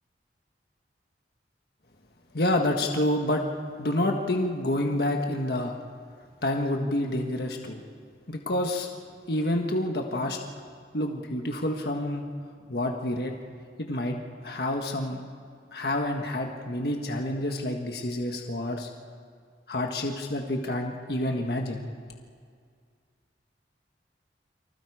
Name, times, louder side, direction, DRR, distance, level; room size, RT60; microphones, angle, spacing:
voice 1, 2.3-3.4 3.8-5.7 6.4-7.8 8.3-8.9 9.3-10.4 10.9-12.2 12.7-13.3 13.8-15.2 15.7-18.9 19.7-21.9, left 1 dB, 60° left, 2 dB, 1.6 m, -28 dB
29.5 x 25.0 x 5.0 m, 2.1 s
head